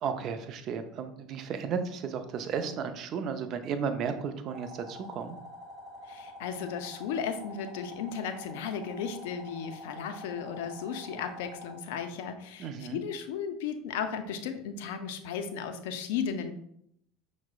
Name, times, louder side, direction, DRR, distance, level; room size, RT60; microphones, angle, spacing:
voice 1, 0.0-5.4 12.6-13.0, right 6 dB, 50° right, 9 dB, 0.4 m, -34 dB
sound 1, 4.5-11.8, left 1 dB, 30° right, 1.1 m, -47 dB
voice 2, 6.1-16.5, left 7 dB, 70° left, 8 dB, 0.4 m, -35 dB
5.7 x 2.0 x 2.3 m, 0.71 s
hypercardioid pair, 80°, 0 cm